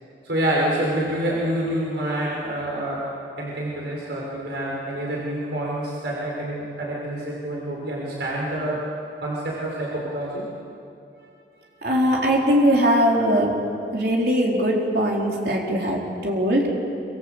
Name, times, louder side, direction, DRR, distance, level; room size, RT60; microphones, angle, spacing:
voice 1, 0.2-3.1 3.4-8.8 9.2-10.4, right 1 dB, 80° right, -4 dB, 5.9 m, -27 dB
voice 2, 11.8-13.5 13.9-16.7, equal, 60° right, -2 dB, 4.3 m, -20 dB
26.5 x 26.0 x 8.2 m, 2.6 s
head